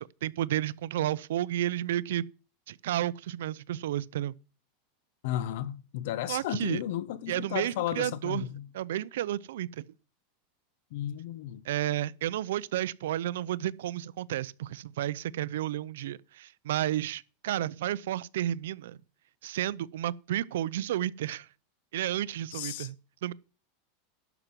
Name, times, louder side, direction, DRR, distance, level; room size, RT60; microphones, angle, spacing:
voice 1, 0.0-2.3 2.7-4.3 6.3-6.8 7.3-8.5 8.7-9.8 11.6-19.0 19.4-21.5 21.9-22.9 23.2-23.3, right 12 dB, 85° right, 0.6 m, -32 dB
voice 2, 5.2-8.7 10.9-11.6 22.5-22.9, left 12 dB, 65° left, 1.0 m, -34 dB
12.0 x 6.0 x 7.4 m
supercardioid pair, 155°, 0 cm